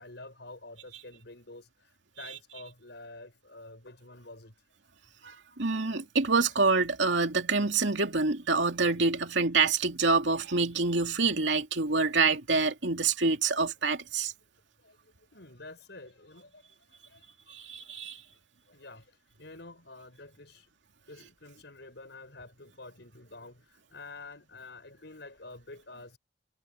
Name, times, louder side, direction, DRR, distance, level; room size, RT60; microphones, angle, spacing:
voice 1, 0.0-4.5 14.8-17.5 18.7-20.7 21.1-26.2, left 2 dB, 65° left, 7.6 m, -49 dB
voice 2, 5.2-14.3 17.5-18.2, right 4 dB, 80° right, 2.6 m, -26 dB
head